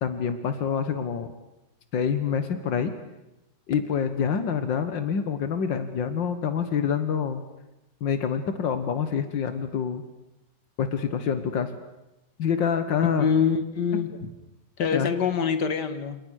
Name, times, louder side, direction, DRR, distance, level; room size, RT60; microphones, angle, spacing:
voice 1, 0.0-1.3 1.9-2.9 3.7-7.4 8.0-10.0 10.8-11.7 12.4-13.3 14.9-15.1, left 7 dB, 85° left, 9 dB, 2.1 m, -26 dB
voice 2, 13.2-14.3 14.8-16.2, left 6 dB, 65° left, 10 dB, 2.4 m, -25 dB
29.0 x 28.5 x 6.5 m, 0.94 s
omnidirectional pair, 2.0 m